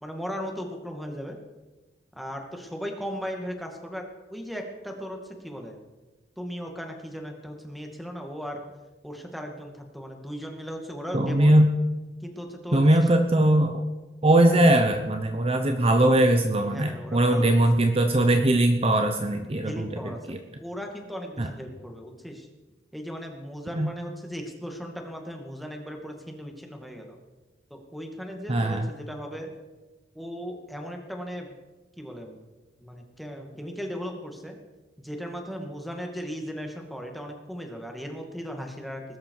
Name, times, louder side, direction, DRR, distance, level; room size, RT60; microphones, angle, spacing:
voice 1, 0.0-1.4 2.2-5.8 6.4-8.6 9.0-11.6 12.2-13.1 16.6-17.6 19.6-20.2 20.6-22.5 22.9-27.2 27.7-29.5 30.1-31.6 32.0-32.4 32.8-34.6 35.0-39.0, equal, ahead, 2 dB, 2.2 m, -37 dB
voice 2, 11.1-11.7 12.7-13.7 14.2-20.4 21.4-21.5 23.7-23.9 28.5-28.9, right 1 dB, 35° right, 5 dB, 1.0 m, -21 dB
20.5 x 12.5 x 4.8 m, 1.2 s
head